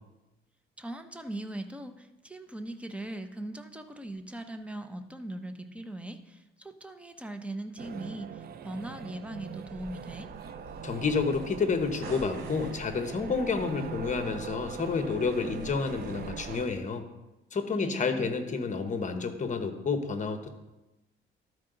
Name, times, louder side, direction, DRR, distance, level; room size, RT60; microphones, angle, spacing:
voice 1, 0.8-10.3 17.7-18.4, right 1 dB, 5° right, 7 dB, 0.7 m, -40 dB
sound 1, 7.8-16.7, right 7 dB, 50° right, 0.5 m, -42 dB
sound 2, 9.6-16.7, right 2 dB, 90° right, 1.8 m, -46 dB
voice 2, 10.8-17.1 17.5-20.5, left 4 dB, 40° left, 7 dB, 1.0 m, -30 dB
12.5 x 4.8 x 3.9 m, 1.0 s
cardioid pair, 90°, 20 cm